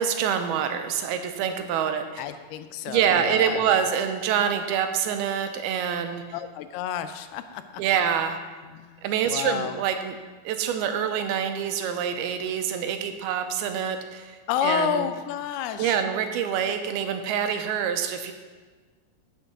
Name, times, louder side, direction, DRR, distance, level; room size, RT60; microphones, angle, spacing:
voice 1, 0.0-2.2 2.9-6.2 7.8-8.4 9.0-10.2 10.4-15.1 15.8-18.3, right 8 dB, 80° right, 7 dB, 2.6 m, -26 dB
voice 2, 2.2-3.7 6.3-7.6 8.6-9.8 14.5-16.0, left 9 dB, 90° left, 10 dB, 2.6 m, -30 dB
9.0 x 6.6 x 5.9 m, 1.4 s
omnidirectional pair, 4.5 m